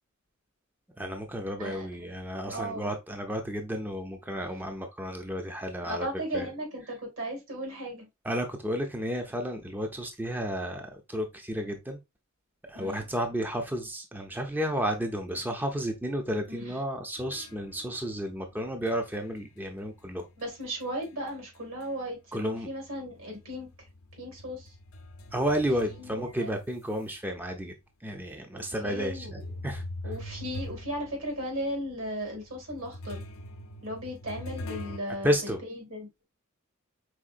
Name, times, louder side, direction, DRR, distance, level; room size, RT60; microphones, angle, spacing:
voice 1, 1.0-6.1 6.3-6.5 8.2-12.0 12.7-20.3 22.3-22.7 25.3-27.7 28.0-29.8 35.2-35.6, equal, 10° right, 0.5 m, -32 dB
voice 2, 2.5-3.0 4.4-4.5 5.8-8.1 12.7-13.0 16.5-16.8 20.4-23.7 24.2-24.8 25.8-26.6 28.5-29.5 30.0-33.2 33.8-36.1, equal, 75° right, 2.2 m, -36 dB
sound 1, 17.2-22.2 22.5-27.1 27.7-27.8 28.6-35.0, left 1 dB, 80° left, 0.6 m, -43 dB
4.8 x 3.6 x 2.5 m
head